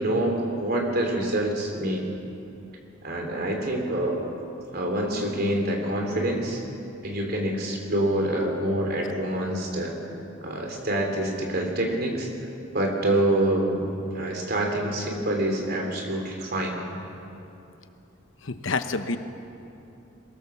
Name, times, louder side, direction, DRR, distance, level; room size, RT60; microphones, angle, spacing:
voice 1, 0.0-2.1 3.0-4.2 4.7-6.6 7.0-9.9 10.4-12.3 12.7-13.9 14.1-16.8, right 1 dB, 50° right, 2 dB, 3.4 m, -26 dB
voice 2, 18.4-19.2, left 3 dB, 75° left, 9 dB, 1.0 m, -28 dB
23.0 x 17.5 x 7.1 m, 2.8 s
head